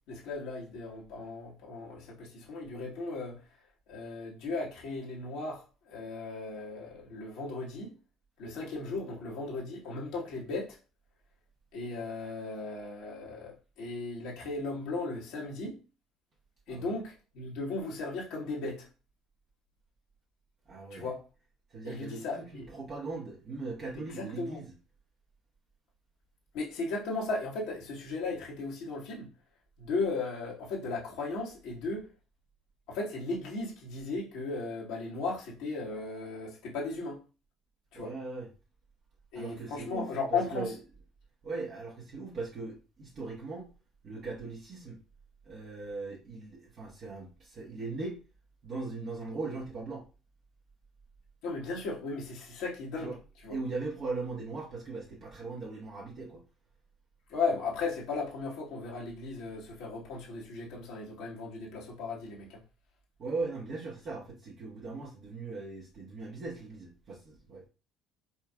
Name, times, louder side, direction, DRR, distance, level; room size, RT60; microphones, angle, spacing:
voice 1, 0.1-3.4 3.9-7.9 8.4-10.8 11.7-15.8 16.7-18.9 20.9-21.2 21.8-22.7 24.1-24.6 26.5-29.3 29.8-32.1 32.9-37.2 37.9-38.1 39.3-40.7 51.4-53.1 53.4-53.6 57.3-62.6, left 3 dB, 60° left, 1.4 m, -36 dB
voice 2, 20.7-21.1 21.7-24.7 37.9-38.5 39.3-40.7 41.4-43.7 44.0-45.0 45.4-48.2 48.6-50.0 53.0-53.2 53.5-56.4 63.2-67.6, right 3 dB, 45° right, 1.5 m, -39 dB
4.5 x 4.4 x 2.4 m
figure-of-eight pair, 55°, 0 cm